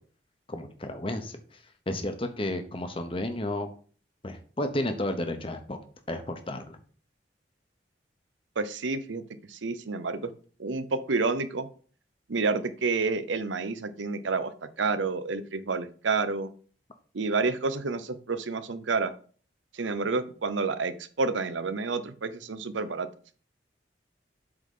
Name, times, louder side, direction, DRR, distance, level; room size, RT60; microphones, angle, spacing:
voice 1, 0.5-1.6 1.9-3.7 4.2-5.8 6.1-6.8, left 1 dB, 30° left, 7 dB, 1.0 m, -32 dB
voice 2, 8.6-9.2 9.5-10.3 10.6-11.7 12.3-16.5 17.1-19.1 19.7-23.1, right 4 dB, 85° right, 12 dB, 0.7 m, -29 dB
7.9 x 3.9 x 5.5 m, 0.41 s
head